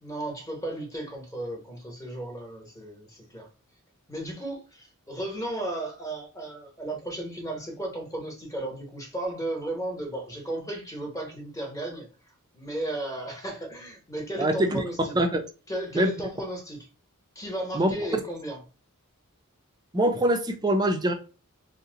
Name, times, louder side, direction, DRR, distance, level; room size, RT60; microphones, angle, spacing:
voice 1, 0.0-3.5 4.1-12.1 12.5-15.1 15.7-16.8 17.3-18.6, right 1 dB, 15° left, 1.0 m, -34 dB
voice 2, 14.4-14.8 15.1-15.4 15.9-16.1 17.7-18.2 19.9-21.1, right 1 dB, 20° right, 0.5 m, -24 dB
2.8 x 2.1 x 3.8 m
head